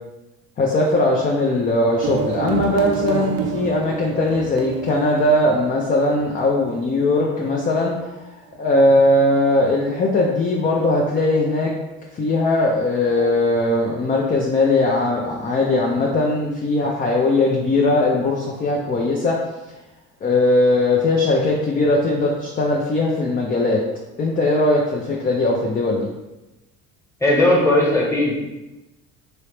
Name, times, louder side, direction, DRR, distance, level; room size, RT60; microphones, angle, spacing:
voice 1, 0.6-8.1 8.6-11.7 12.1-19.4 20.2-23.8 24.2-26.1, left 2 dB, 25° left, -2 dB, 0.5 m, -19 dB
sound 1, 2.0-7.4, right 7 dB, 45° right, 0.4 m, -29 dB
voice 2, 27.2-28.4, left 1 dB, 10° left, -4 dB, 1.2 m, -17 dB
3.1 x 2.9 x 3.1 m, 1.0 s
supercardioid pair, 95°, 32 cm